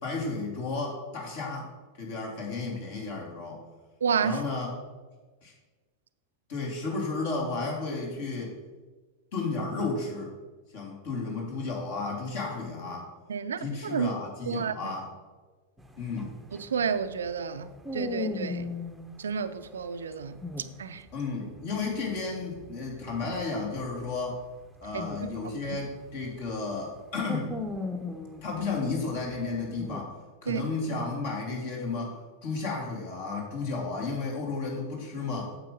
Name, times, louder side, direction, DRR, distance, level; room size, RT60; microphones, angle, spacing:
voice 1, 0.0-1.7 1.9-3.6 4.2-4.7 5.4-5.5 6.5-8.5 9.3-10.3 10.7-13.1 13.6-15.1 16.0-16.4 21.1-24.4 24.8-27.6 28.4-30.1 30.4-35.5, left 3 dB, 50° left, 3.0 m, -33 dB
voice 2, 4.0-4.4 13.3-14.1 14.5-14.9 16.5-18.7 19.2-20.4 20.8-21.1 24.9-25.3 25.7-25.8 30.5-30.7, right 6 dB, 65° right, 0.5 m, -31 dB
sound 1, 15.8-19.1 20.1-21.2 21.4-26.6 26.9-30.0, left 3 dB, 5° right, 0.9 m, -38 dB
8.8 x 7.4 x 5.3 m
figure-of-eight pair, 90°, 0 cm